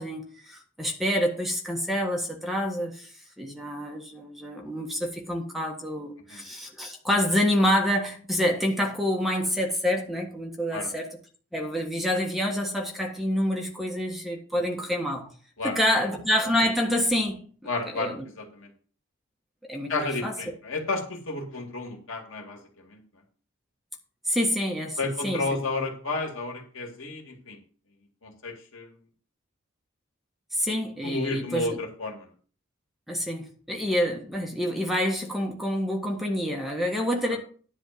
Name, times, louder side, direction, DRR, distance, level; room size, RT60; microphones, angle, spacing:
voice 1, 0.0-11.1 11.5-15.3 15.6-17.4 17.9-18.3 19.7-20.3 24.2-25.0 25.2-25.6 30.5-31.8 33.1-37.4, equal, ahead, 0 dB, 1.4 m, -27 dB
voice 2, 15.6-16.0 17.6-18.7 19.9-23.0 25.0-27.6 28.2-29.0 31.0-32.3 37.3-37.4, left 3 dB, 70° left, 2 dB, 2.6 m, -32 dB
10.5 x 4.4 x 7.7 m, 0.42 s
head